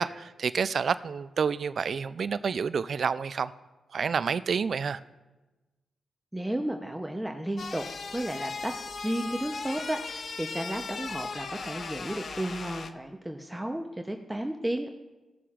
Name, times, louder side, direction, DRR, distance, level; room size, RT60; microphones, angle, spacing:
voice 1, 0.0-3.5 3.9-5.0, right 6 dB, 60° right, 15 dB, 0.4 m, -29 dB
voice 2, 6.3-7.8 8.1-8.7 9.0-14.9, right 1 dB, 10° right, 4 dB, 0.8 m, -33 dB
sound 1, 7.6-12.9, left 4 dB, 60° left, 0.6 m, -38 dB
16.0 x 6.7 x 2.5 m, 1.1 s
supercardioid pair, 45°, 0 cm